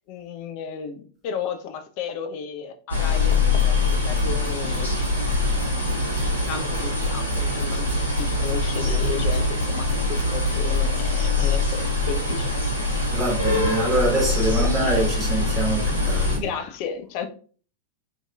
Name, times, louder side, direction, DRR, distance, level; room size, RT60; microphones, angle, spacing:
voice 1, 0.0-3.8 4.0-4.9 6.5-12.5 14.6-15.1 16.3-17.3, left 7 dB, 45° left, 0.4 m, -33 dB
sound 1, 2.9-16.4, left 2 dB, 80° left, 0.8 m, -23 dB
sound 2, 3.3-10.8, equal, 80° right, 0.7 m, -32 dB
voice 2, 13.1-16.4, right 2 dB, 10° right, 1.2 m, -25 dB
2.7 x 2.5 x 2.2 m
figure-of-eight pair, 90°, 0 cm